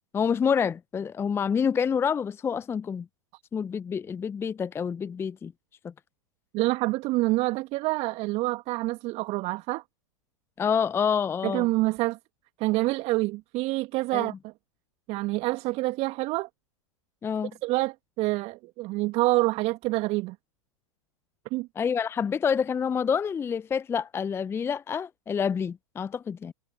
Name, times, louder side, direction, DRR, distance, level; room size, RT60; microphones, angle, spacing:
voice 1, 0.1-3.1 3.5-5.5 5.8-5.9 10.6-11.7 14.1-14.3 17.2-17.5 21.8-26.5, left 7 dB, 15° left, 0.6 m, -27 dB
voice 2, 6.5-9.8 11.4-12.2 12.6-14.5 15.1-16.5 17.6-20.4 21.5-21.7, right 20 dB, 35° right, 1.8 m, -27 dB
figure-of-eight pair, 100°, 17 cm